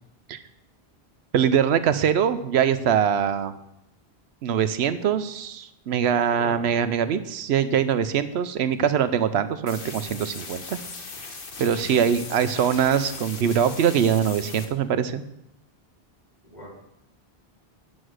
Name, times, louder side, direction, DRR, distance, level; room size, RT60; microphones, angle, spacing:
voice 1, 1.3-3.5 4.4-10.8 11.6-15.3, right 8 dB, 80° right, 12 dB, 0.9 m, -23 dB
voice 2, 6.4-6.6 11.9-12.0 16.4-16.7, right 1 dB, 40° left, -5 dB, 3.4 m, -40 dB
sound 1, 9.7-14.7, left 4 dB, 60° left, 1.3 m, -39 dB
9.5 x 6.3 x 6.4 m, 0.83 s
omnidirectional pair, 1.1 m